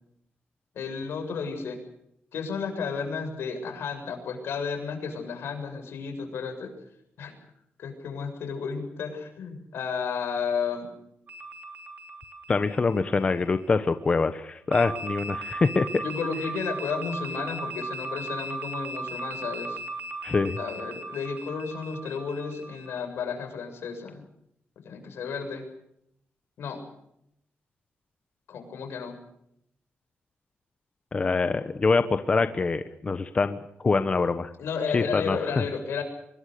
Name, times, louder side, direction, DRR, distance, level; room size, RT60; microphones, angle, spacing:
voice 1, 0.8-1.8 2.3-6.7 7.2-7.4 7.8-10.9 16.0-19.8 20.6-24.2 24.8-25.6 26.6-26.8 28.5-29.2 34.6-36.0, left 5 dB, 85° left, 5 dB, 7.3 m, -32 dB
sound 1, 11.3-13.8 14.7-23.0, right 2 dB, 45° right, 3.2 m, -37 dB
voice 2, 12.5-16.0 20.2-20.6 31.1-34.5 34.9-35.4, left 4 dB, 30° left, 10 dB, 1.1 m, -25 dB
25.0 x 21.5 x 6.8 m, 0.75 s
wide cardioid pair, 160°, 4 cm